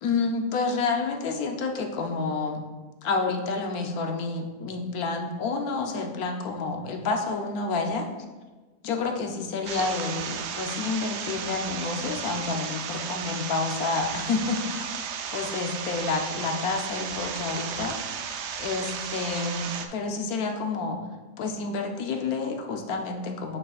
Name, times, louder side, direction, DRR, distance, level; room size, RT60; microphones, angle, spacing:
voice 1, 0.0-2.6 3.0-8.1 8.8-18.3 18.6-21.0 21.4-23.6, left 4 dB, 65° left, 4 dB, 1.1 m, -29 dB
sound 1, 9.7-19.9, right 7 dB, 80° right, 0.6 m, -34 dB
8.7 x 6.6 x 2.4 m, 1.3 s
omnidirectional pair, 1.8 m